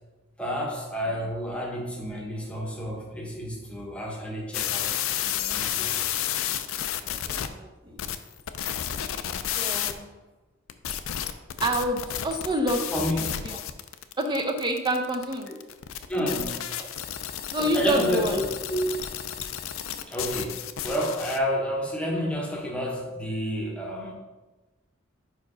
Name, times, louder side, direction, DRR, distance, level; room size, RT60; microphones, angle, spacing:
voice 1, 0.4-4.9 5.2-6.1 12.8-13.2 15.5-15.6 16.1-16.7 17.6-18.9 20.0-24.1, equal, 5° left, -2 dB, 0.9 m, -30 dB
sound 1, 4.5-7.5 8.0-9.9 10.7-21.4, left 10 dB, 80° left, 0.4 m, -31 dB
voice 2, 7.0-8.0 9.6-10.1 11.6-13.6 14.2-15.5 16.8-16.9 17.5-18.4, right 1 dB, 20° right, 4 dB, 0.6 m, -28 dB
5.1 x 4.8 x 4.9 m, 1.2 s
head